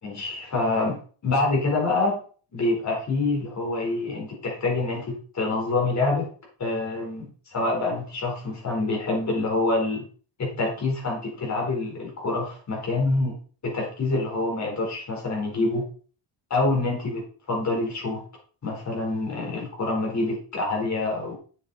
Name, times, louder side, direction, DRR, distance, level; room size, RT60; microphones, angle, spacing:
voice 1, 0.0-2.2 2.5-6.3 6.6-10.0 10.4-13.4 13.6-15.8 16.5-17.2 17.5-18.2 18.6-21.3, left 2 dB, 35° left, -1 dB, 4.7 m, -26 dB
8.1 x 7.5 x 4.3 m, 0.41 s
cardioid pair, 160°, 47 cm